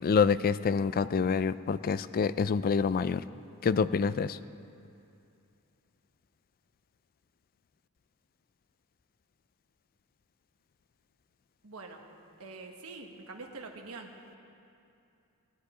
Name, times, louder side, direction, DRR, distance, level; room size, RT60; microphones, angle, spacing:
voice 1, 0.0-3.2 3.6-4.4, left 5 dB, 40° left, 15 dB, 0.3 m, -27 dB
voice 2, 11.6-12.0 12.4-14.1, right 3 dB, 70° right, 2 dB, 1.4 m, -45 dB
18.0 x 11.5 x 5.0 m, 2.6 s
head